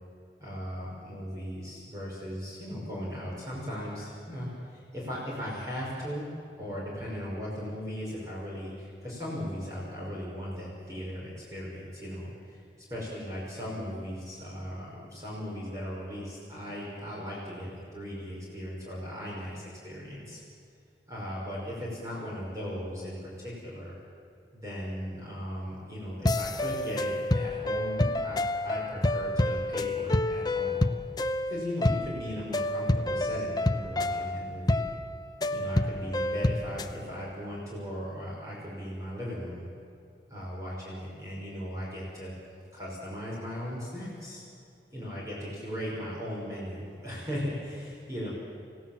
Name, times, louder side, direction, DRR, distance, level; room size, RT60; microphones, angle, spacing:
voice 1, 0.4-6.2 6.6-12.6 12.9-20.4 21.1-24.0 24.5-30.8 31.5-34.8 35.5-39.6 40.3-42.3 42.7-44.4 44.9-48.3, equal, 20° right, -6 dB, 5.8 m, -37 dB
sound 1, 26.2-36.9, left 1 dB, 20° left, 0.7 m, -29 dB
29.5 x 16.5 x 7.6 m, 2.6 s
head